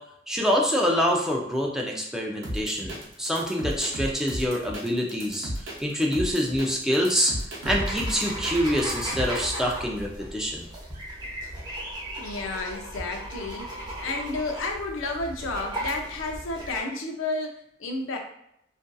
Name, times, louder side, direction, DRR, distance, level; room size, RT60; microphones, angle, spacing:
voice 1, 0.3-5.5 5.8-7.3 7.7-10.7, equal, 5° right, -1 dB, 0.4 m, -26 dB
sound 1, 2.4-9.7, equal, 75° right, 0.7 m, -34 dB
sound 2, 7.6-16.8, right 1 dB, 25° right, 0.8 m, -36 dB
voice 2, 12.2-18.2, left 2 dB, 85° left, 2 dB, 0.5 m, -31 dB
2.5 x 2.5 x 2.2 m, 0.75 s
head